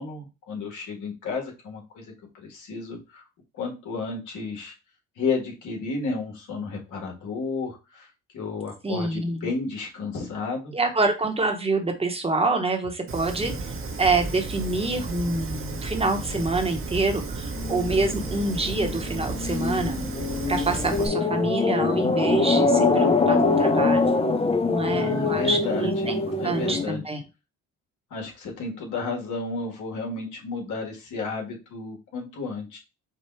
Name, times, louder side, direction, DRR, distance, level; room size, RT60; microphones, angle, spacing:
voice 1, 0.0-3.2 3.6-4.7 5.2-8.1 8.3-10.7 24.8-27.0 28.1-32.8, left 4 dB, 80° left, 1 dB, 1.7 m, -32 dB
voice 2, 8.8-9.5 10.7-13.7 14.0-20.0 20.5-24.1 24.6-27.2, right 3 dB, 20° right, 5 dB, 1.1 m, -26 dB
Fire, 13.1-21.1, right 3 dB, 45° right, 1.1 m, -33 dB
sound 1, 17.6-26.9, left 3 dB, 20° left, 0.6 m, -24 dB
4.9 x 2.4 x 4.5 m, 0.28 s
cardioid pair, 90°, 30 cm